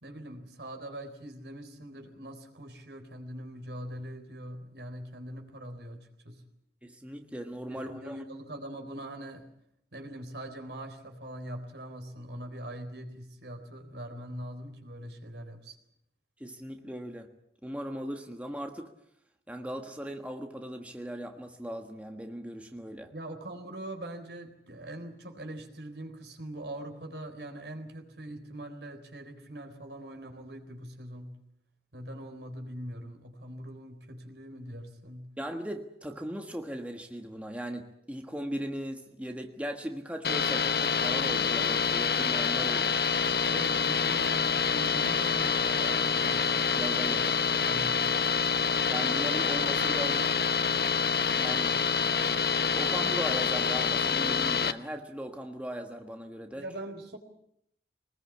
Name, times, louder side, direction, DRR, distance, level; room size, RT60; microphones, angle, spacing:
voice 1, 0.0-6.4 7.7-9.5 9.9-15.8 23.1-31.4 31.9-35.3 43.5-48.1 56.5-57.2, right 1 dB, 80° right, 5 dB, 3.9 m, -42 dB
voice 2, 6.8-8.2 16.4-17.3 17.6-18.9 19.5-23.1 35.4-43.0 46.8-47.3 48.9-50.3 51.3-51.8 52.7-56.7, equal, 10° right, 4 dB, 1.4 m, -38 dB
sound 1, 40.2-54.7, left 6 dB, 60° left, 0.9 m, -27 dB
23.5 x 20.0 x 8.4 m, 0.74 s
head